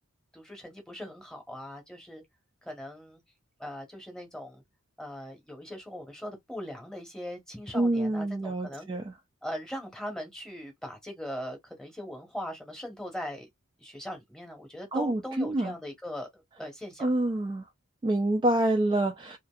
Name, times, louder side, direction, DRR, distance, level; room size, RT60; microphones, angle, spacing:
voice 1, 0.3-2.2 2.6-3.2 3.6-4.6 5.0-8.9 9.4-13.5 13.8-17.1, equal, 5° left, 0.9 m, -40 dB
voice 2, 7.7-9.1 14.9-15.7 17.0-17.7 18.0-19.4, right 1 dB, 20° right, 0.3 m, -27 dB
2.5 x 2.5 x 2.3 m
head